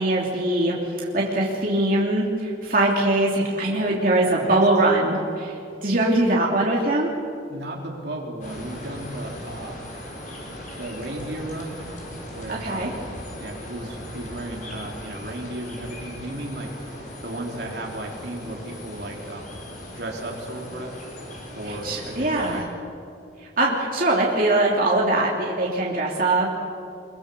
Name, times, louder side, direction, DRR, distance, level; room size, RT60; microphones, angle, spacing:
voice 1, 0.0-7.1 12.5-12.9 21.7-22.6 23.4-26.5, right 2 dB, 50° right, -3 dB, 3.1 m, -22 dB
voice 2, 7.5-9.8 10.8-13.0 13.4-19.6 19.9-20.9 21.5-22.7, right 1 dB, 65° right, 0 dB, 3.4 m, -35 dB
sound 1, 8.4-22.6, equal, 45° left, 5.6 m, -38 dB
23.5 x 23.5 x 6.9 m, 2.5 s
head